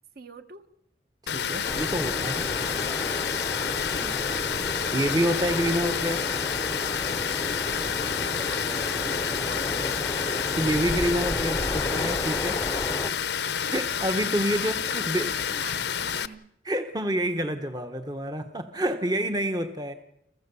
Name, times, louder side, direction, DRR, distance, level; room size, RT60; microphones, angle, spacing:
voice 1, 0.1-0.7 2.7-3.6 3.9-4.5 8.1-10.2 14.4-16.4, right 3 dB, 55° right, 8 dB, 1.5 m, -45 dB
Water, 1.3-16.3, left 8 dB, 65° left, 0.8 m, -29 dB
voice 2, 1.3-2.5 4.9-6.4 10.6-12.6 13.7-15.5 16.6-19.9, equal, 20° right, 7 dB, 1.0 m, -28 dB
sound 1, 1.6-13.1, left 1 dB, 15° left, 0.7 m, -32 dB
30.0 x 15.0 x 6.9 m, 0.82 s
head